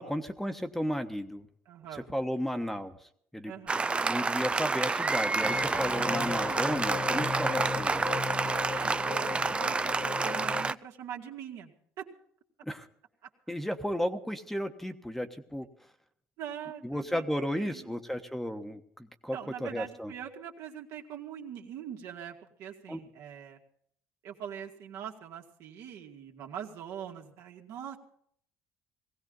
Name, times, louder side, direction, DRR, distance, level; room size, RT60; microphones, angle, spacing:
voice 1, 0.0-1.5 1.9-2.9 3.3-3.5 4.0-8.1 12.6-12.9 13.5-15.7 16.8-20.1 22.9-23.0, equal, 5° left, 7 dB, 1.3 m, -34 dB
voice 2, 1.7-2.1 3.4-3.8 8.7-12.1 16.4-18.0 19.3-23.6 24.2-28.0, right 9 dB, 70° right, 1 dB, 2.4 m, -43 dB
Applause, 3.7-10.7, right 4 dB, 20° right, 0.5 m, -29 dB
sound 1, 5.4-10.7, left 6 dB, 35° left, 0.7 m, -37 dB
19.5 x 16.0 x 4.0 m, 0.64 s
supercardioid pair, 90°, 5 cm